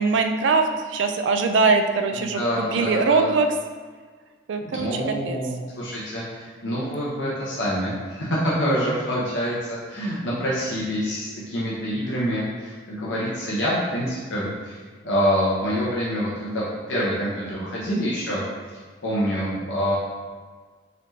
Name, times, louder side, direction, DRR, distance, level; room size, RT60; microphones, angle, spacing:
voice 1, 0.0-2.4 2.7-3.5 4.5-5.4, right 4 dB, 75° right, 6 dB, 0.3 m, -22 dB
voice 2, 2.2-3.3 4.7-18.4 19.0-20.0, equal, 75° left, -7 dB, 0.8 m, -26 dB
4.1 x 3.1 x 2.7 m, 1.5 s
head